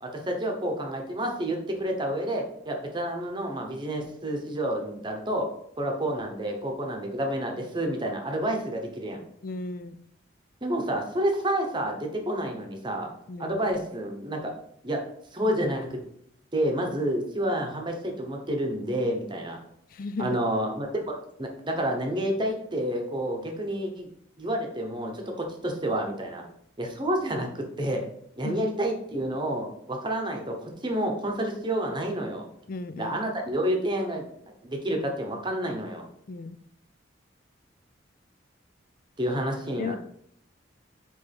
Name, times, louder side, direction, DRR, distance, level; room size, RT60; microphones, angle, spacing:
voice 1, 0.0-5.5 5.8-9.2 10.6-13.1 13.4-14.5 14.8-15.0 15.3-16.0 16.5-19.6 20.2-24.1 24.4-26.4 26.8-28.0 28.4-32.5 33.0-34.2 34.6-36.1 39.2-40.0, right 1 dB, 25° right, 2 dB, 1.0 m, -29 dB
voice 2, 9.4-10.0 13.3-13.6 19.9-20.4 28.4-28.6 32.7-33.2 36.3-36.6 39.8-40.0, left 3 dB, 45° left, 12 dB, 0.4 m, -35 dB
8.3 x 3.3 x 3.5 m, 0.70 s
head